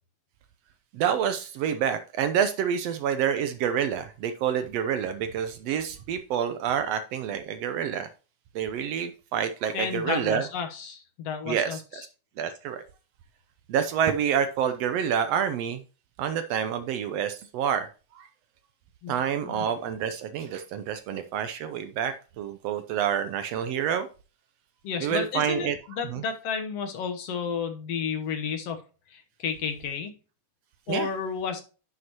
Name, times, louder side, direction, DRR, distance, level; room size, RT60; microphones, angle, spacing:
voice 1, 0.9-8.1 8.5-10.4 11.5-11.8 12.4-12.8 13.7-15.8 16.2-17.9 18.1-18.3 19.1-24.1 25.0-25.8 26.1-26.2 30.9-31.1, right 8 dB, 80° right, 10 dB, 1.5 m, -28 dB
voice 2, 9.7-12.1 19.0-19.1 19.5-19.7 24.8-28.8 29.1-30.1 30.9-31.6, left 6 dB, 65° left, 6 dB, 1.8 m, -32 dB
11.0 x 6.6 x 2.9 m, 0.34 s
omnidirectional pair, 3.6 m